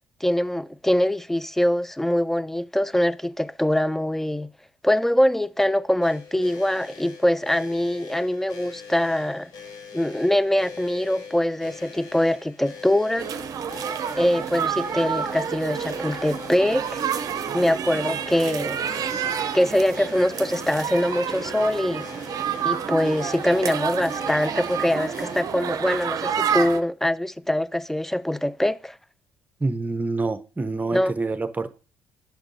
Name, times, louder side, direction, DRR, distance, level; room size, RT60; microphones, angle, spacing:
voice 1, 0.2-4.5 4.8-9.5 9.9-13.3 14.1-17.0 17.5-18.8 19.5-22.1 22.6-29.0 30.9-31.1, left 1 dB, 5° left, 0.3 m, -23 dB
sound 1, 6.0-25.4, left 5 dB, 65° left, 1.4 m, -42 dB
sound 2, 13.2-26.8, right 8 dB, 55° right, 0.6 m, -29 dB
voice 2, 29.6-31.7, right 3 dB, 20° right, 0.8 m, -27 dB
9.0 x 5.9 x 2.7 m
hypercardioid pair, 50°, 7 cm